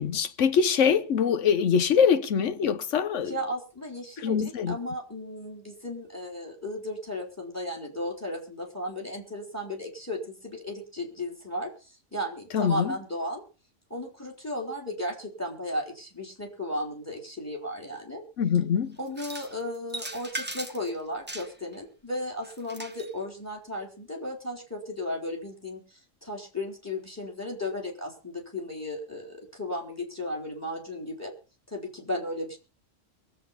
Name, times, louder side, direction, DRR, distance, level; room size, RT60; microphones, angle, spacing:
voice 1, 0.0-3.3 4.2-4.8 12.5-12.9 18.4-19.0, left 7 dB, 70° left, 1.3 m, -23 dB
voice 2, 3.2-13.4 13.9-18.2 19.0-31.3 31.7-32.6, left 1 dB, 10° left, 4.5 m, -35 dB
sound 1, 19.1-19.5 19.9-20.9 21.3-21.8 22.4-23.1, right 2 dB, 10° right, 1.4 m, -38 dB
23.0 x 8.0 x 5.6 m
omnidirectional pair, 1.4 m